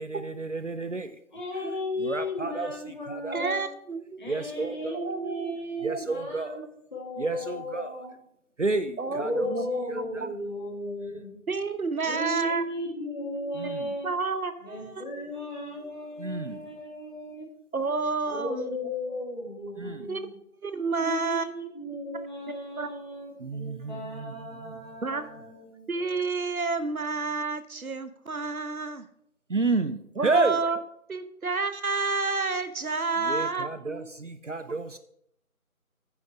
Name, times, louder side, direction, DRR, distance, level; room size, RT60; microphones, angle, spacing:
voice 1, 0.0-1.2 2.0-2.7 3.1-3.6 4.2-5.0 5.8-6.6 7.2-7.9 8.6-9.5 13.6-13.8 16.2-16.6 19.8-20.1 23.4-24.3 24.6-24.7 29.5-30.6 33.2-35.0, right 3 dB, 55° right, 0.6 m, -30 dB
voice 2, 1.3-3.7 4.2-6.6 6.9-8.2 9.0-11.4 12.0-14.1 14.6-17.5 18.2-20.3 21.0-25.8, left 1 dB, 35° left, 2.7 m, -35 dB
voice 3, 3.3-4.2 4.9-6.0 9.0-9.2 9.5-9.9 10.2-10.3 11.5-12.6 14.0-15.0 17.7-18.8 20.1-20.2 20.6-21.4 22.8-22.9 25.0-25.3 25.9-29.0 30.2-30.8 31.1-34.1, right 4 dB, 70° right, 1.1 m, -30 dB
9.5 x 5.2 x 6.1 m
figure-of-eight pair, 170°, 44 cm